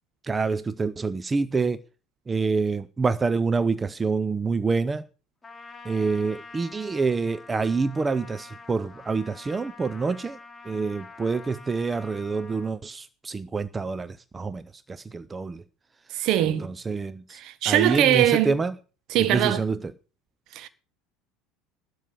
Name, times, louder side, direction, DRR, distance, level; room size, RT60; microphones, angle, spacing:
voice 1, 0.2-1.8 2.3-5.1 5.8-10.4 10.6-15.6 16.4-18.7 19.1-19.9, right 4 dB, 20° right, 0.6 m, -27 dB
Trumpet, 5.4-12.7, left 3 dB, 15° left, 2.9 m, -46 dB
voice 2, 16.1-16.7 17.3-18.6 19.1-19.6 20.5-20.7, right 12 dB, 50° right, 1.3 m, -22 dB
12.0 x 6.4 x 8.3 m
figure-of-eight pair, 70°, 0 cm